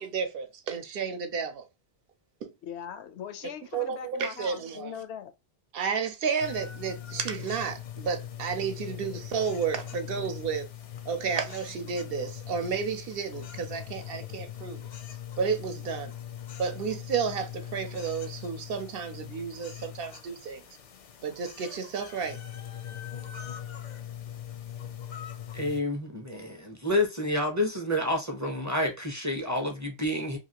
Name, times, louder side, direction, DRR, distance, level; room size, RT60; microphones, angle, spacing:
voice 1, 0.0-1.6 2.4-2.5 3.7-4.9 5.7-10.7 11.1-14.9 15.4-16.1 16.6-20.6 21.2-22.4, right 6 dB, 65° right, 0.7 m, -32 dB
voice 2, 2.6-5.3, left 8 dB, 85° left, 0.8 m, -40 dB
sound 1, 6.4-25.8, left 10 dB, 55° left, 0.5 m, -41 dB
voice 3, 25.5-30.4, left 1 dB, 20° right, 0.5 m, -29 dB
2.8 x 2.4 x 2.8 m
omnidirectional pair, 1.1 m